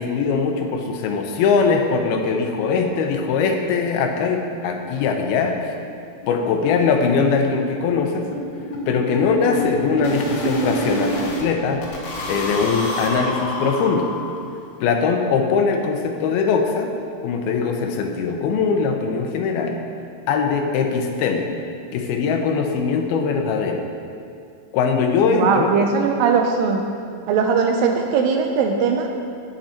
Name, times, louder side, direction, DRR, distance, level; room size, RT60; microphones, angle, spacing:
voice 1, 0.0-5.7 6.3-8.3 8.9-11.8 12.3-14.1 14.8-16.9 17.2-19.8 20.3-21.5 21.9-23.8 24.7-25.7, left 5 dB, 80° left, 4 dB, 2.7 m, -21 dB
sound 1, 4.6-4.7 5.0-5.1 5.4-5.5 5.8-6.0 6.2-11.4 11.8-14.6, right 1 dB, 60° left, 2.1 m, -28 dB
voice 2, 25.3-26.8 27.3-29.1, right 5 dB, 80° right, 3 dB, 2.1 m, -19 dB
10.0 x 9.0 x 4.4 m, 2.3 s
omnidirectional pair, 4.4 m